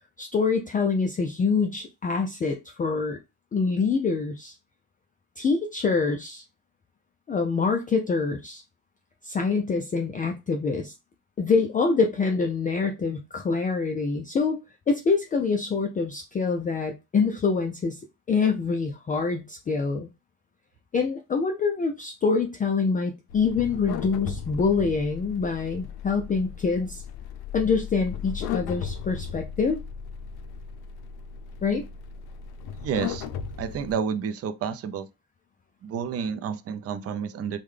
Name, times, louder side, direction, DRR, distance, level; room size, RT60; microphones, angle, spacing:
voice 1, 0.2-3.2 3.5-4.5 5.4-6.4 7.3-8.6 9.2-10.9 11.4-14.6 14.9-18.0 18.3-20.1 20.9-27.0 27.5-29.8 31.6-31.8, left 4 dB, 25° left, 0.3 m, -25 dB
sound 1, 23.3-33.9, left 8 dB, 80° left, 0.5 m, -36 dB
voice 2, 32.8-33.3 33.6-35.1 35.8-37.6, right 7 dB, 40° right, 0.4 m, -30 dB
3.5 x 2.2 x 3.2 m
cardioid pair, 110°, 37 cm